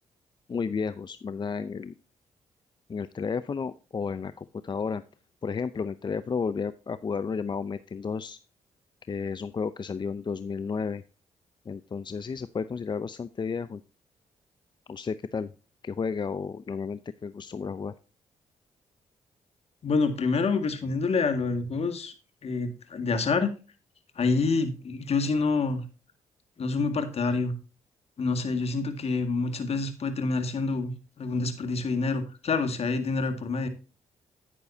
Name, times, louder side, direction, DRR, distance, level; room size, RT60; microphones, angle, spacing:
voice 1, 0.5-1.9 2.9-5.0 5.4-8.4 9.1-11.0 11.7-13.8 14.9-15.5 15.8-17.9, left 5 dB, 35° left, 14 dB, 0.6 m, -32 dB
voice 2, 19.8-22.1 22.4-23.5 24.2-25.8 26.6-27.5 28.2-30.9 31.2-33.7, left 4 dB, 55° left, 8 dB, 1.9 m, -27 dB
9.8 x 9.2 x 2.7 m, 0.34 s
cardioid pair, 65°, 13 cm